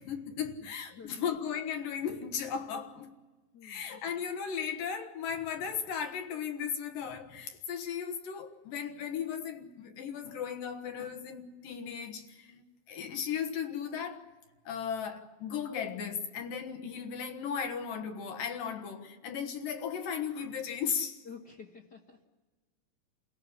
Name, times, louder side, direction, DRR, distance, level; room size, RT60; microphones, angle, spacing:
voice 1, 0.0-3.1 3.6-14.3 14.7-21.2, left 7 dB, 80° left, 3.0 m, -36 dB
voice 2, 0.6-1.3 3.5-3.9 21.2-22.2, left 6 dB, 50° left, 1.3 m, -50 dB
29.0 x 16.5 x 8.3 m
omnidirectional pair, 4.0 m